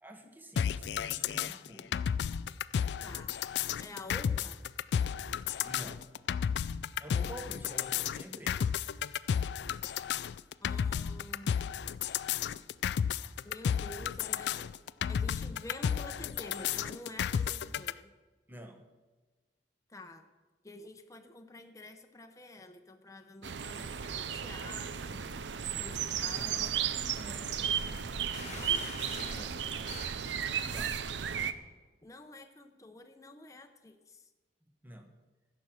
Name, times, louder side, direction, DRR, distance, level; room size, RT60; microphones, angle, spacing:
voice 1, 0.0-1.9 5.6-6.0 7.0-8.7 18.5-18.8 26.3-27.7 29.3-29.6 30.7-31.0 34.8-35.1, right 1 dB, 10° right, 5 dB, 1.1 m, -48 dB
sound 1, 0.6-17.9, left 8 dB, 65° left, 0.3 m, -32 dB
voice 2, 3.0-3.3 3.8-4.6 10.6-11.7 13.4-14.7 15.1-18.1 19.9-20.3 20.6-25.3 25.7-26.6 28.4-28.8 29.2-29.8 32.0-34.3, left 2 dB, 20° left, 6 dB, 0.8 m, -49 dB
sound 2, 23.4-31.5, right 8 dB, 80° right, 0.6 m, -34 dB
sound 3, 28.3-29.5 29.9-30.2, left 4 dB, 40° left, 1.3 m, -45 dB
14.5 x 6.1 x 6.4 m, 1.2 s
head